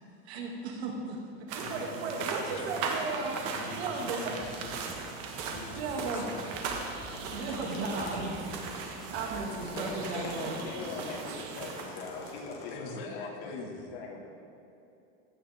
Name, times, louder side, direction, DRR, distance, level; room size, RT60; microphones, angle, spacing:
voice 1, 0.3-4.4 5.4-6.3 7.3-8.9 9.1-10.6, right 3 dB, 85° right, 0 dB, 2.7 m, -36 dB
sound 1, 1.5-12.4, right 5 dB, 45° right, 1.6 m, -38 dB
voice 2, 1.6-2.8 3.4-5.0 5.5-6.8 12.7-13.9, left 4 dB, 60° left, 1 dB, 2.2 m, -45 dB
sound 2, 4.4-9.6, right 1 dB, ahead, 0.7 m, -51 dB
sound 3, 7.1-8.4 9.1-11.1 11.8-12.9, left 3 dB, 30° left, 2.0 m, -44 dB
voice 3, 9.8-14.3, left 4 dB, 80° left, -2 dB, 2.8 m, -41 dB
16.0 x 12.0 x 3.7 m, 2.9 s
supercardioid pair, 170°, 31 cm